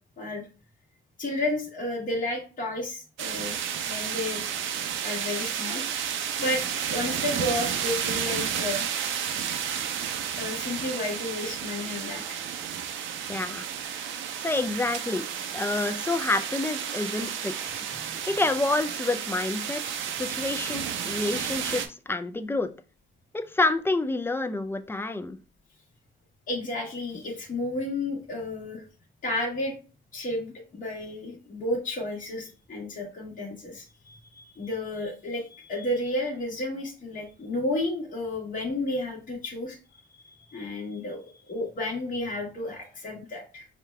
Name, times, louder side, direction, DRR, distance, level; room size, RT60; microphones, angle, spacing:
voice 1, 0.2-0.5 1.2-3.6 3.8-4.4 5.0-5.8 6.1-8.9 10.4-12.4 26.5-28.8 29.2-29.7 30.1-39.8 40.1-43.7, left 1 dB, 40° left, -3 dB, 1.3 m, -32 dB
sound 1, 3.2-21.9, right 8 dB, 75° right, 0.6 m, -32 dB
voice 2, 13.3-13.7 14.4-15.3 15.5-17.8 18.3-22.7 23.3-25.4, left 2 dB, 10° left, 8 dB, 0.4 m, -28 dB
5.0 x 2.3 x 3.1 m, 0.35 s
cardioid pair, 90°, 20 cm